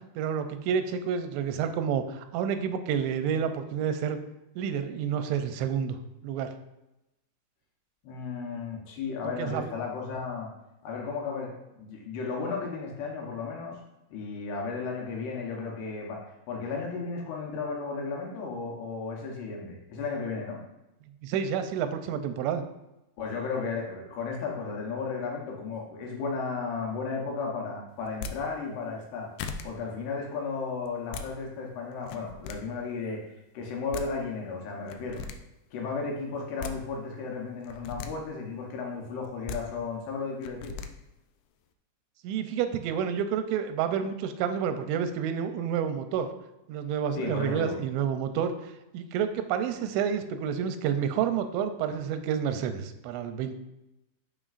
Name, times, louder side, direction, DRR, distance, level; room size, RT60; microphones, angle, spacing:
voice 1, 0.0-4.2 4.6-6.0 6.2-6.5 9.4-9.7 21.2-22.6 42.2-46.3 46.7-53.6, right 8 dB, 90° right, 9 dB, 3.0 m, -29 dB
voice 2, 8.0-10.5 10.8-13.8 14.1-16.2 16.5-20.6 23.2-29.3 29.6-33.2 33.5-35.3 35.7-40.8 47.1-47.8, left 4 dB, 75° left, 0 dB, 2.9 m, -34 dB
sound 1, 28.1-28.4 29.0-29.1 29.4-29.7 30.9-31.3 32.0-32.6 33.6-33.7 33.9-34.1 34.9-35.4 36.3-36.8 37.6-38.1 39.2-39.6 40.4-40.9, left 5 dB, 90° left, 2.2 m, -37 dB
11.0 x 5.2 x 2.5 m, 0.93 s
omnidirectional pair, 5.1 m